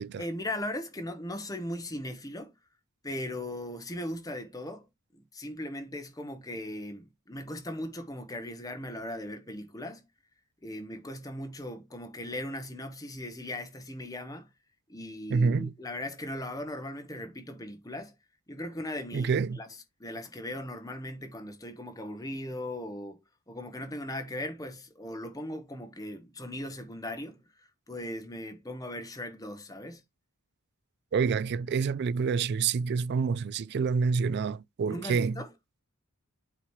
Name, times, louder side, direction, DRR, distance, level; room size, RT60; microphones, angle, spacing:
voice 1, 0.2-2.5 3.0-10.1 10.6-14.5 14.9-18.1 18.5-30.0 34.9-35.5, left 1 dB, 15° left, 1.0 m, -38 dB
voice 2, 15.3-15.7 19.1-19.6 31.1-35.4, right 5 dB, 50° right, 0.3 m, -27 dB
8.5 x 3.0 x 4.8 m
head